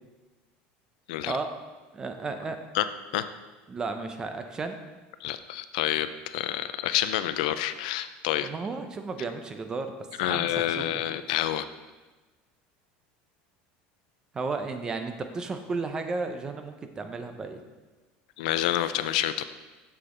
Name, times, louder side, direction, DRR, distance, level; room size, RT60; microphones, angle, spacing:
voice 1, 1.9-2.6 3.7-4.8 8.4-9.9 10.2-10.5 10.8-10.9 14.3-17.6, right 4 dB, 20° right, 7 dB, 0.5 m, -33 dB
voice 2, 5.2-8.5 10.2-11.7 18.4-19.4, left 12 dB, 90° left, 12 dB, 0.4 m, -28 dB
7.1 x 6.6 x 3.8 m, 1.2 s
cardioid pair, 160°, 4 cm